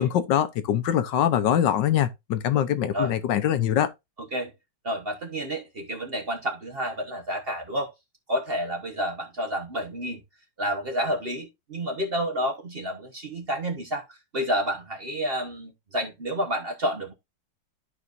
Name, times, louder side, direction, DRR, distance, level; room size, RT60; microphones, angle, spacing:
voice 1, 0.0-3.9, left 10 dB, 75° left, 1.4 m, -23 dB
voice 2, 4.8-7.9 8.3-10.2 10.6-17.1, equal, 40° right, 1.1 m, -30 dB
13.0 x 4.9 x 2.6 m
omnidirectional pair, 2.1 m